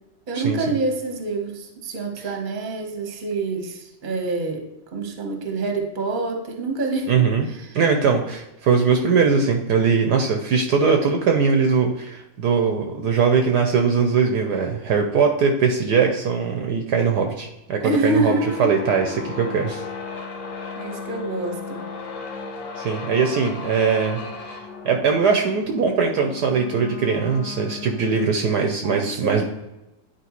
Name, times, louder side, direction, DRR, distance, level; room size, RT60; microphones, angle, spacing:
voice 1, 0.3-4.6 4.9-7.3 7.6-7.8 17.8-18.7 20.8-21.8 28.8-29.4, right 2 dB, 30° right, 2 dB, 1.0 m, -26 dB
voice 2, 7.1-7.5 7.7-19.8 22.8-24.2 24.5-24.6 24.8-29.4, right 5 dB, 65° right, 4 dB, 1.2 m, -21 dB
sound 1, 18.2-28.5, left 4 dB, 80° left, 1.8 m, -35 dB
10.0 x 4.6 x 3.0 m, 0.94 s
omnidirectional pair, 2.1 m